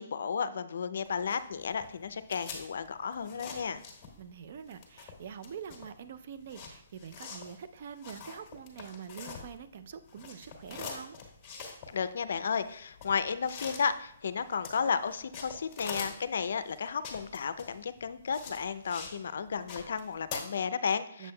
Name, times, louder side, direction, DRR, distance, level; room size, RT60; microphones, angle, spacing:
voice 1, 0.0-3.8 11.9-21.3, left 6 dB, 70° left, 13 dB, 0.4 m, -33 dB
sound 1, 1.1-4.4 4.6-9.8 10.1-19.2 19.5-20.4, left 5 dB, 20° left, 1.4 m, -44 dB
voice 2, 4.2-11.2 21.2-21.3, right 7 dB, 50° right, 11 dB, 0.4 m, -45 dB
7.2 x 6.9 x 2.2 m, 0.68 s
hypercardioid pair, 155°, 0 cm